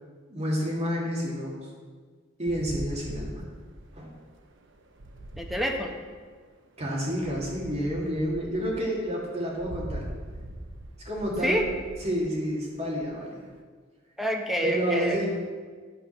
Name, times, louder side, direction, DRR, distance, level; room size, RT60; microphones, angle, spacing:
voice 1, 0.3-1.7 2.4-3.4 3.9-4.1 6.8-10.0 11.0-11.6 12.0-13.5 14.6-15.2, equal, 35° right, -4 dB, 2.7 m, -29 dB
sound 1, 2.5-6.4 7.2-13.5, right 1 dB, 65° right, 0.9 m, -41 dB
voice 2, 5.4-5.9 11.4-11.7 14.2-15.2, equal, ahead, 2 dB, 1.0 m, -27 dB
11.0 x 5.6 x 6.7 m, 1.5 s
head